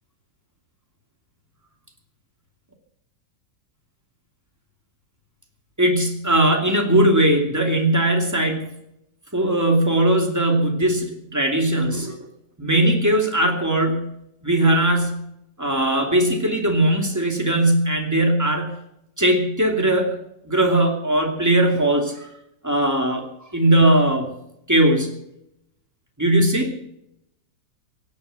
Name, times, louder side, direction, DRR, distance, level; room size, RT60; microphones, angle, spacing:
voice 1, 5.8-8.7 9.3-12.2 12.6-14.1 14.4-15.3 15.6-18.8 19.2-20.2 20.4-22.3 22.6-24.3 24.7-25.2 26.2-26.7, right 1 dB, 10° right, 3 dB, 2.6 m, -19 dB
17.5 x 9.6 x 8.0 m, 0.78 s
omnidirectional pair, 1.9 m